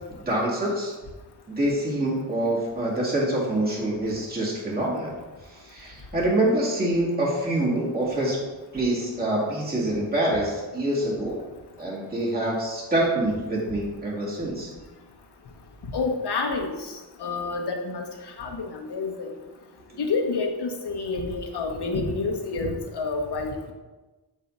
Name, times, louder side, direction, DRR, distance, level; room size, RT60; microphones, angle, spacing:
voice 1, 0.3-0.9 1.5-5.1 5.5-8.4 8.7-11.4 11.8-14.7, right 1 dB, 20° right, -6 dB, 1.9 m, -26 dB
voice 2, 15.9-16.7 17.2-18.0 18.4-19.3 20.0-23.7, left 3 dB, 70° left, 2 dB, 1.0 m, -28 dB
7.3 x 2.7 x 5.2 m, 1.2 s
wide cardioid pair, 90°, 41 cm